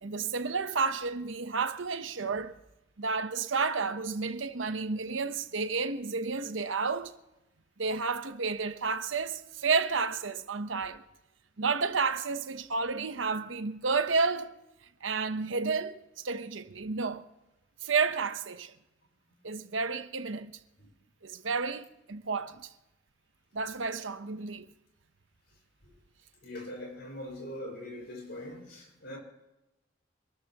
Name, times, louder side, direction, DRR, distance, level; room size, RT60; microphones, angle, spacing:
voice 1, 0.0-2.6 3.0-7.1 7.8-11.0 11.6-14.6 15.0-17.3 17.8-18.7 19.4-20.6 21.2-22.7 23.5-24.7, right 4 dB, 85° right, 1.0 m, -31 dB
voice 2, 26.4-29.2, left 1 dB, 60° left, 5.6 m, -42 dB
26.5 x 13.5 x 3.0 m
head